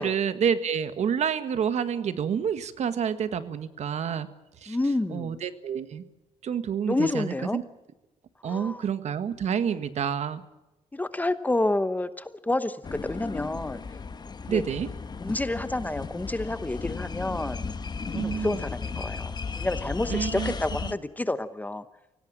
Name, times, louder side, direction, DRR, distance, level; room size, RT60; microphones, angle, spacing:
voice 1, 0.0-4.3 4.6-4.8 5.1-6.0 6.4-7.6 8.4-10.4 14.5-14.9 18.1-18.6 20.1-20.5 20.8-21.0, right 7 dB, 65° right, 11 dB, 1.6 m, -28 dB
voice 2, 4.7-5.4 6.9-7.6 8.4-8.8 10.9-13.8 14.5-14.6 15.2-17.7 18.1-21.8, left 2 dB, 15° left, 12 dB, 0.9 m, -29 dB
sound 1, 12.8-20.9, left 5 dB, 35° left, 1.2 m, -35 dB
24.5 x 17.5 x 7.5 m, 0.98 s
cardioid pair, 120°, 12 cm